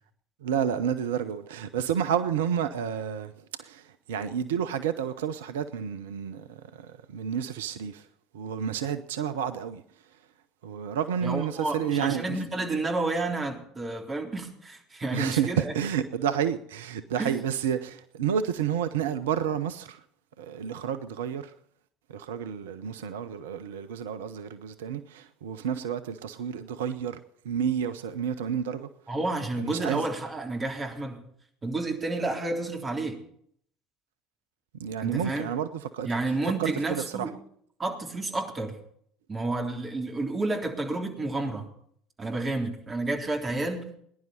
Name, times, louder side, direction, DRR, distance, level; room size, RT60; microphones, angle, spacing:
voice 1, 0.4-8.1 8.3-9.8 10.6-12.4 15.1-20.0 20.4-21.5 22.1-27.2 27.4-28.9 29.6-30.1 34.8-36.1 36.6-37.3, right 8 dB, 70° right, 0.7 m, -30 dB
voice 2, 11.2-15.7 17.2-17.4 29.1-31.2 31.6-33.2 35.0-35.5 36.0-37.3 37.8-38.8 39.3-41.7 42.2-43.9, right 2 dB, 25° right, 3.6 m, -30 dB
20.0 x 11.0 x 4.2 m
figure-of-eight pair, 65°, 0 cm